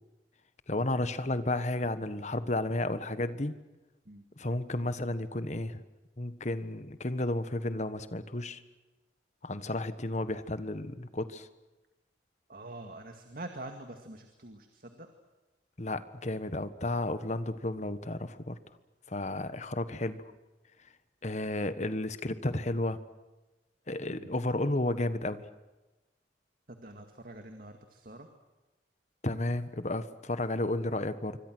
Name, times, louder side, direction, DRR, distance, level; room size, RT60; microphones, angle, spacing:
voice 1, 0.7-3.6 4.4-5.8 6.2-8.6 9.4-11.5 15.8-18.6 19.1-20.3 21.2-23.0 23.9-25.5 29.2-31.4, left 2 dB, 40° left, 12 dB, 1.4 m, -32 dB
voice 2, 12.5-15.1 24.1-24.3 26.7-28.3, right 2 dB, 55° right, 6 dB, 2.1 m, -45 dB
26.5 x 25.0 x 6.3 m, 1.1 s
head